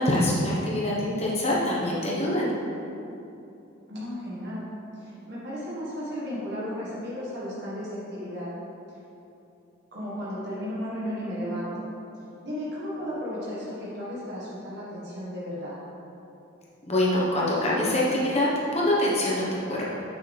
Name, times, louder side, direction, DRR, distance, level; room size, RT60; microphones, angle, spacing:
voice 1, 0.0-2.5 16.9-19.9, left 1 dB, 30° left, -5 dB, 1.1 m, -25 dB
voice 2, 3.9-4.6 4.9-8.5 8.9-9.0 9.9-11.9 12.4-15.8, equal, 50° right, -8 dB, 1.5 m, -34 dB
6.8 x 6.5 x 3.4 m, 2.8 s
head